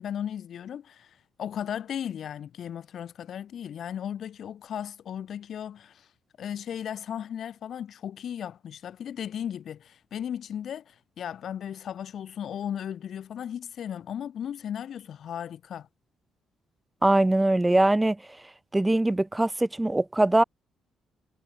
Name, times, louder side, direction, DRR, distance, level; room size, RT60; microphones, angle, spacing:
voice 1, 0.0-6.1 6.4-15.9, left 9 dB, 60° left, 1.5 m, -36 dB
voice 2, 17.0-18.2 18.7-20.4, right 2 dB, 10° right, 1.6 m, -22 dB
cardioid pair, 105°, 0 cm